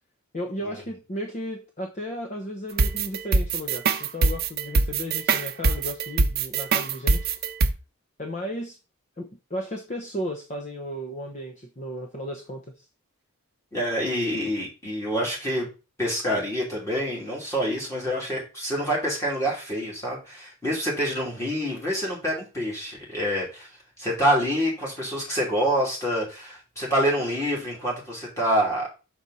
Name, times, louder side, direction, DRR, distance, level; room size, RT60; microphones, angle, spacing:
voice 1, 0.3-7.3 8.2-8.8 9.2-12.8, equal, 35° left, 2 dB, 0.8 m, -34 dB
sound 1, 2.8-7.7, right 4 dB, 45° right, 0.6 m, -22 dB
voice 2, 13.7-15.7 16.0-23.7 24.0-28.9, equal, 15° left, -4 dB, 2.8 m, -26 dB
6.2 x 5.2 x 4.1 m, 0.30 s
head